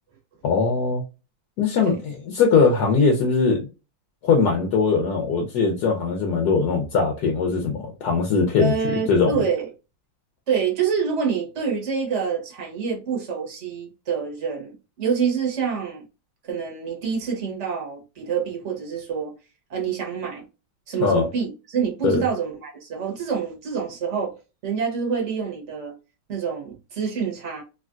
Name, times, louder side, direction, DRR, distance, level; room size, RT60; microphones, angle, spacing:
voice 1, 0.4-1.0 1.6-3.6 4.2-8.7 9.1-9.4 21.0-21.3 22.0-22.2, left 4 dB, 65° left, 1.0 m, -20 dB
voice 2, 8.6-9.7 10.5-16.0 16.4-19.3 19.7-20.4 20.9-24.4 24.6-25.9 26.3-27.6, right 6 dB, 45° right, 1.0 m, -27 dB
3.5 x 2.4 x 2.4 m
omnidirectional pair, 2.3 m